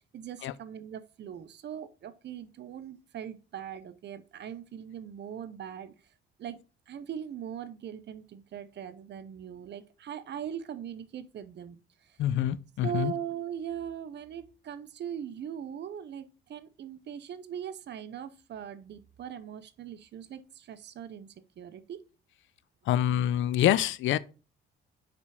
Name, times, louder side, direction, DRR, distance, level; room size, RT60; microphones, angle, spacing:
voice 1, 0.1-5.9 6.4-12.2 12.8-22.0, right 9 dB, 60° right, 0.8 m, -40 dB
voice 2, 12.2-13.1 22.9-24.2, left 11 dB, 75° left, 0.5 m, -26 dB
5.2 x 5.1 x 4.9 m
cardioid pair, 90°, 20 cm